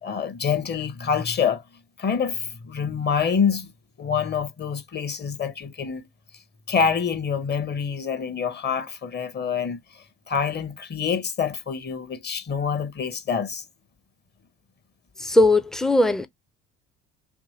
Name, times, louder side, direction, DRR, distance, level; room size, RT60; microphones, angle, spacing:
voice 1, 0.0-1.6 2.0-3.7 4.0-6.0 6.7-13.6, left 6 dB, 30° left, 0.7 m, -26 dB
voice 2, 15.2-16.3, left 2 dB, ahead, 0.3 m, -19 dB
2.7 x 2.6 x 2.7 m
hypercardioid pair, 60°, 35 cm